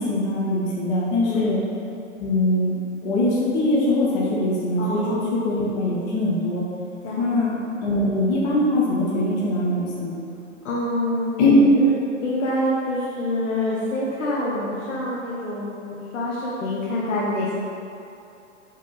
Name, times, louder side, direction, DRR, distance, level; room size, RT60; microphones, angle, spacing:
voice 1, 0.0-1.6 2.2-2.7 3.0-6.6 7.2-7.5 7.8-10.2 11.4-11.8, left 1 dB, 35° left, -6 dB, 0.6 m, -21 dB
voice 2, 4.8-5.4 7.0-7.3 10.6-11.4 11.7-11.9 12.2-17.5, left 1 dB, 80° left, -6 dB, 0.8 m, -26 dB
4.5 x 2.9 x 2.3 m, 2.7 s
hypercardioid pair, 130°, 38 cm